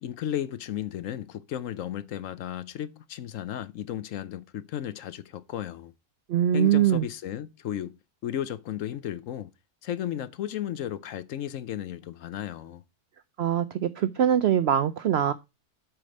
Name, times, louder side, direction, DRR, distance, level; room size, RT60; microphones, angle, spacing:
voice 1, 0.0-5.9 6.5-8.0 8.2-9.5 9.8-12.8, left 11 dB, 65° left, 0.9 m, -34 dB
voice 2, 6.3-7.1 13.4-15.3, right 10 dB, 65° right, 0.6 m, -23 dB
7.7 x 4.9 x 5.2 m
omnidirectional pair, 1.6 m